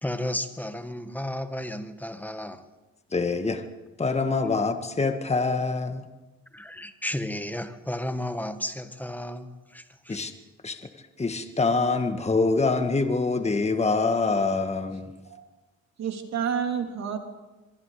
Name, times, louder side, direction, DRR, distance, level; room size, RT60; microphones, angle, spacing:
voice 1, 0.0-2.7 6.5-10.2, left 1 dB, 5° left, 9 dB, 1.7 m, -33 dB
voice 2, 3.1-3.6 4.0-6.1 10.1-10.3 10.6-10.8 11.2-15.1, left 3 dB, 20° left, 7 dB, 1.8 m, -25 dB
voice 3, 16.0-17.2, right 7 dB, 60° right, 4 dB, 3.3 m, -29 dB
24.5 x 23.5 x 5.1 m, 1.1 s
cardioid pair, 90°, 30 cm